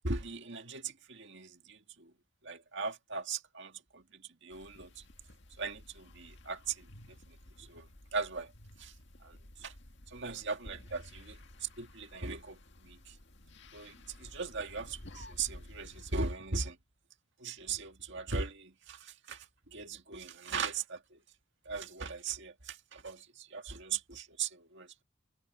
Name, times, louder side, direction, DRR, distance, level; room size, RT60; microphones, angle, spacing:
voice 1, 0.0-2.1 2.4-5.0 5.6-8.5 8.8-8.9 9.2-9.7 10.1-13.2 13.7-16.8 17.4-21.2 21.7-25.0, right 4 dB, 55° right, 2.1 m, -39 dB
sound 1, 4.5-16.2, left 1 dB, 55° left, 2.0 m, -53 dB
head